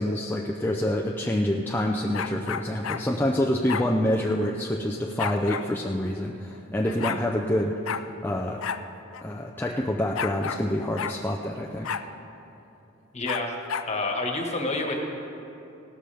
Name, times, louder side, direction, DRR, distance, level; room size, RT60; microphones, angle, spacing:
voice 1, 0.0-8.6 9.2-11.9, left 1 dB, 10° left, 0 dB, 0.5 m, -27 dB
sound 1, 2.1-3.0 3.7-3.9 5.2-5.7 6.5-6.6 6.8-7.2 7.9-8.1 8.6-8.8 9.1-9.2 10.2-10.6 11.0-11.2 11.8-12.1 13.3-13.9, left 7 dB, 85° left, 0.5 m, -31 dB
voice 2, 13.1-13.6 13.9-15.0, left 2 dB, 35° left, 1 dB, 1.4 m, -28 dB
17.5 x 13.0 x 3.4 m, 2.8 s
head